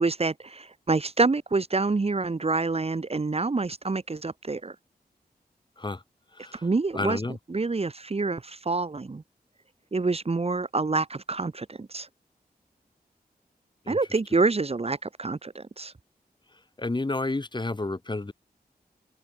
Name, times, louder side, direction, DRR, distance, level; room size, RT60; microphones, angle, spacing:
voice 1, 0.0-4.8 6.5-7.2 7.5-9.2 9.9-12.1 13.9-15.9, right 3 dB, 40° right, 1.8 m, -27 dB
voice 2, 6.9-7.4 13.9-14.0 16.8-18.3, left 2 dB, 30° left, 5.7 m, -30 dB
open air
wide cardioid pair, 120°, 16 cm